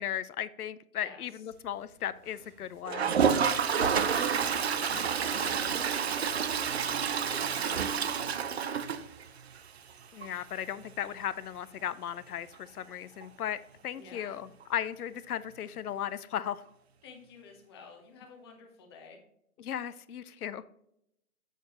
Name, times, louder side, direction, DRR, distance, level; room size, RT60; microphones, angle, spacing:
voice 1, 0.0-3.2 3.8-3.9 10.1-16.6 19.6-20.6, left 10 dB, 90° left, 0.6 m, -36 dB
voice 2, 0.9-1.4 3.5-6.5 7.1-8.6 13.9-14.4 17.0-19.2, left 5 dB, 20° left, 0.8 m, -50 dB
sound 1, 1.5-7.1, right 2 dB, 90° right, 1.8 m, -46 dB
Toilet flush, 2.9-9.6 9.9-10.0 10.2-10.3 10.6-10.7 13.2-13.3 14.6-14.7, right 7 dB, 50° right, 0.5 m, -29 dB
6.6 x 6.5 x 3.0 m
hypercardioid pair, 155°, 44 cm